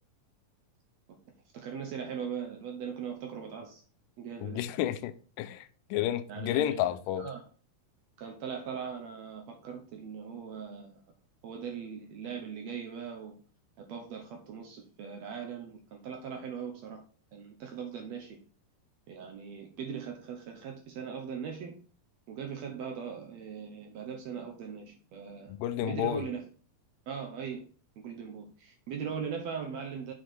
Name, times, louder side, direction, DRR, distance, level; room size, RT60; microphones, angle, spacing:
voice 1, 1.5-3.8 4.2-4.6 6.3-6.8 7.2-7.4 8.2-11.0 11.4-13.3 13.8-17.0 17.3-18.4 19.1-21.8 22.3-25.5 25.8-26.4 27.1-27.6 28.0-30.1, right 7 dB, 80° right, 1.5 m, -40 dB
voice 2, 4.4-7.2 25.5-26.3, left 12 dB, 80° left, 2.0 m, -31 dB
6.4 x 4.6 x 4.4 m
omnidirectional pair, 4.1 m